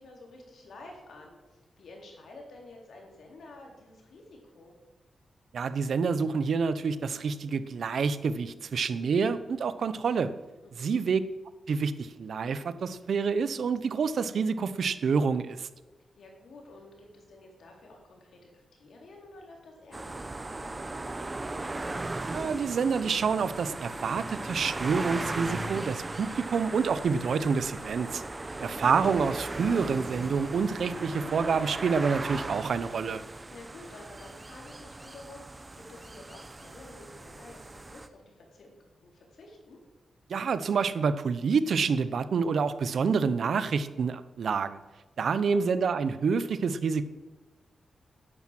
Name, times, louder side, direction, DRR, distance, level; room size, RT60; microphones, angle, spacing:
voice 1, 0.0-4.7 10.6-11.1 16.2-21.6 28.4-28.8 33.5-39.8 45.2-45.6, left 2 dB, 75° left, 0 dB, 4.0 m, -51 dB
voice 2, 5.5-10.3 10.8-11.2 11.7-15.7 22.3-28.2 28.6-33.2 40.3-44.8 45.2-47.0, right 5 dB, 70° right, 13 dB, 0.8 m, -28 dB
sound 1, 19.9-38.1, right 2 dB, 20° right, 0.9 m, -37 dB
12.0 x 10.0 x 7.6 m, 1.2 s
wide cardioid pair, 125°, 0 cm